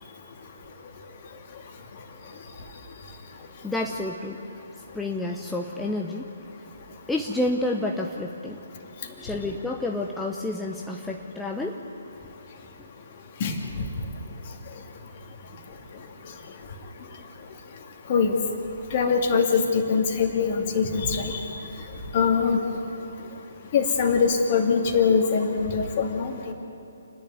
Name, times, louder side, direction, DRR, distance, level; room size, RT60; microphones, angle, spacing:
voice 1, 3.6-4.4 4.9-6.3 7.1-8.6 9.0-11.8, left 2 dB, 5° left, 0 dB, 0.9 m, -29 dB
voice 2, 18.9-21.4 22.1-22.6 23.7-26.5, left 5 dB, 35° left, 2 dB, 2.5 m, -22 dB
29.0 x 11.0 x 9.4 m, 2.7 s
figure-of-eight pair, 135°, 0 cm